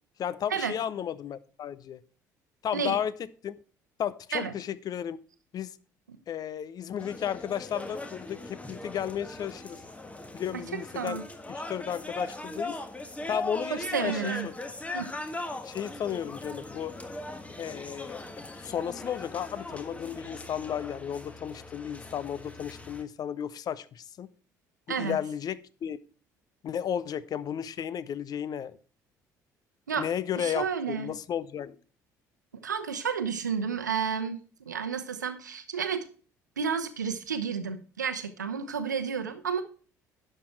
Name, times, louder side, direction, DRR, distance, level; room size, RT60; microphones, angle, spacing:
voice 1, 0.2-2.0 2.6-3.6 4.0-5.2 5.5-5.8 6.3-9.8 10.3-11.2 11.5-12.8 13.3-14.5 15.6-16.9 17.6-24.3 24.9-26.0 26.6-28.8 30.0-31.8, left 9 dB, 40° left, 19 dB, 0.6 m, -34 dB
sound 1, 7.0-23.0, left 2 dB, 15° left, 1.5 m, -40 dB
voice 2, 10.5-11.2 13.7-14.5 14.9-15.1 24.9-25.2 29.9-30.1 30.4-31.2 32.6-34.4 34.7-36.1 36.6-39.6, right 6 dB, 80° right, 10 dB, 0.9 m, -31 dB
11.0 x 6.7 x 4.4 m, 0.40 s
figure-of-eight pair, 55°, 10 cm